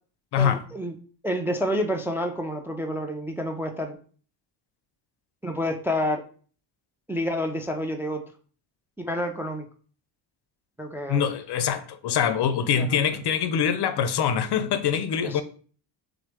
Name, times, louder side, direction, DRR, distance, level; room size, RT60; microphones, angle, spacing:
voice 1, 0.4-0.9 1.2-4.0 5.4-6.2 7.1-8.2 9.0-9.7 10.8-11.3 12.8-13.0 15.2-15.4, equal, 5° right, 0.3 m, -29 dB
voice 2, 11.1-15.4, left 8 dB, 60° left, 0.6 m, -24 dB
6.0 x 2.0 x 3.4 m
cardioid pair, 95°, 45 cm